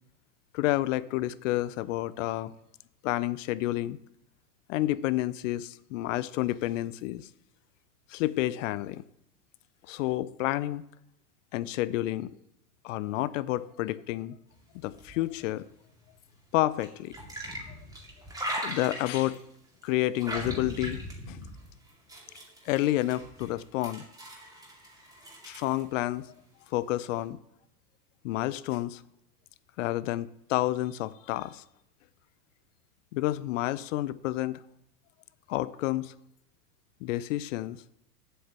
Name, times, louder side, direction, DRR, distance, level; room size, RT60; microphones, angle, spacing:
voice 1, 0.5-2.5 3.0-4.0 4.7-7.3 8.1-9.0 9.9-10.8 11.5-12.3 12.8-14.3 14.8-15.6 16.5-17.1 18.6-19.4 19.8-21.4 22.7-24.0 25.4-26.3 26.7-27.4 28.2-29.0 29.8-31.6 33.1-34.6 35.5-36.1 37.0-37.8, left 16 dB, 55° left, 0.6 m, -30 dB
sound 1, 14.6-16.3 16.8-19.4 19.8-25.8, equal, 10° right, 2.2 m, -40 dB
7.9 x 6.4 x 7.4 m
hypercardioid pair, 105°, 47 cm